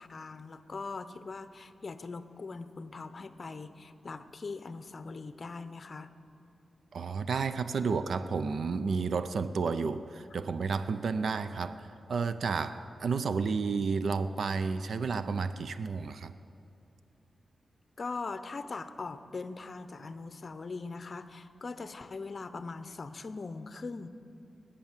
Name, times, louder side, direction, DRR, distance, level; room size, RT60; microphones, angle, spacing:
voice 1, 0.0-6.1 18.0-24.1, left 4 dB, 45° left, 11 dB, 0.7 m, -41 dB
voice 2, 6.9-16.3, right 5 dB, 70° right, 12 dB, 0.5 m, -31 dB
20.0 x 8.5 x 7.3 m, 2.6 s
wide cardioid pair, 95°, 0 cm